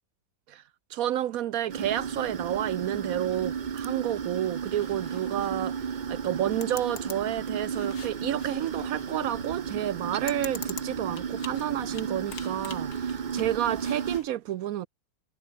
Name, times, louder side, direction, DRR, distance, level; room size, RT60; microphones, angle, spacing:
voice 1, 0.9-14.9, right 12 dB, 70° right, 0.9 m, -30 dB
sound 1, 1.7-14.2, right 7 dB, 45° right, 0.6 m, -33 dB
sound 2, 4.7-14.3, left 5 dB, 65° left, 2.7 m, -46 dB
omnidirectional pair, 1.8 m